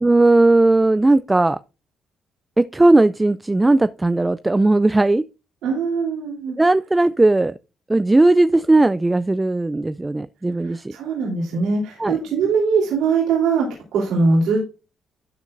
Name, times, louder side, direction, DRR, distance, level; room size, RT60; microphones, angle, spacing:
voice 1, 0.0-1.6 2.6-5.2 6.6-7.5 7.9-10.9 12.0-12.2, right 2 dB, 15° right, 0.3 m, -17 dB
voice 2, 5.6-6.6 10.6-13.7 13.9-14.7, right 4 dB, 85° right, 3.4 m, -21 dB
12.5 x 6.9 x 2.6 m
cardioid pair, 90°, 0 cm